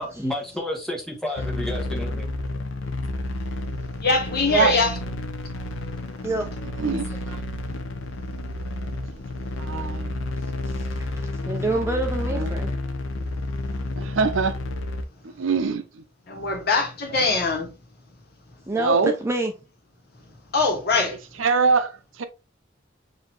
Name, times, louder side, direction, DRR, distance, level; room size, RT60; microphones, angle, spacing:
voice 1, 0.0-2.3 7.3-7.4, left 1 dB, 5° left, 1.1 m, -31 dB
sound 1, 1.4-15.0, left 2 dB, 85° left, 0.7 m, -30 dB
voice 2, 4.0-5.0 16.3-17.7 20.5-21.2, left 4 dB, 55° left, 1.4 m, -22 dB
voice 3, 6.8-7.4 9.6-10.1 12.3-12.5 14.0-14.6 15.2-15.8 18.7-19.1 21.4-22.2, right 5 dB, 80° right, 0.6 m, -23 dB
voice 4, 11.5-12.7 18.7-19.5, right 2 dB, 15° right, 0.5 m, -26 dB
6.2 x 2.8 x 2.5 m
head